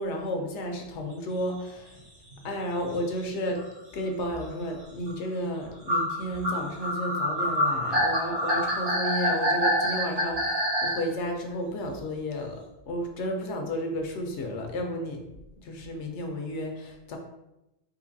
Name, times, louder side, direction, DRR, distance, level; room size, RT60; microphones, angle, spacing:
voice 1, 0.0-2.0 2.4-3.6 3.9-12.6 12.9-15.2 15.6-17.2, equal, 70° left, 3 dB, 0.8 m, -32 dB
sound 1, 1.9-2.0 2.3-2.5 3.3-3.4 3.6-3.7 4.3-4.5 5.1-5.2 5.9-11.0, equal, 50° right, 1.4 m, -26 dB
3.8 x 2.6 x 2.6 m, 0.91 s
omnidirectional pair, 1.3 m